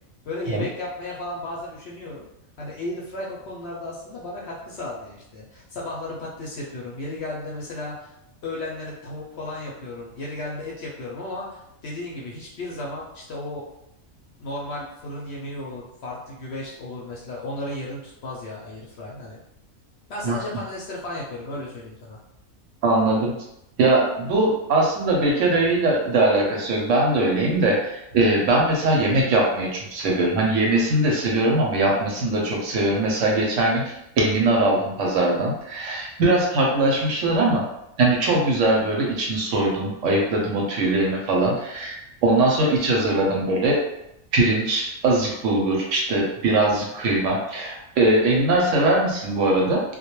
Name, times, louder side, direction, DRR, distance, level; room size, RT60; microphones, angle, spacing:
voice 1, 0.2-2.2 2.6-8.1 8.4-13.7 14.4-19.4 20.1-22.2, left 2 dB, 65° left, -5 dB, 0.7 m, -34 dB
voice 2, 22.8-23.4 23.8-37.7 38.0-43.8 44.3-49.8, right 2 dB, 70° right, -2 dB, 0.9 m, -21 dB
2.2 x 2.2 x 2.9 m, 0.82 s
omnidirectional pair, 1.4 m